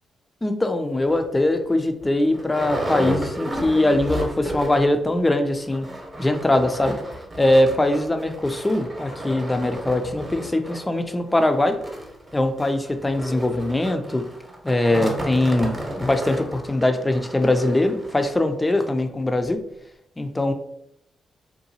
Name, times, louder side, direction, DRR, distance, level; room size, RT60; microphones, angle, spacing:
voice 1, 0.4-5.9 6.2-7.0 7.4-11.8 12.3-14.2 14.6-19.6 20.2-20.5, left 1 dB, 20° left, 7 dB, 0.4 m, -21 dB
sound 1, 1.1-1.2 1.7-1.8 2.0-5.0 5.2-5.3 5.6-18.4 19.0-19.1 19.5-19.6, right 1 dB, 30° right, 0.9 m, -33 dB
2.7 x 2.2 x 2.7 m, 0.75 s
hypercardioid pair, 45°, 0 cm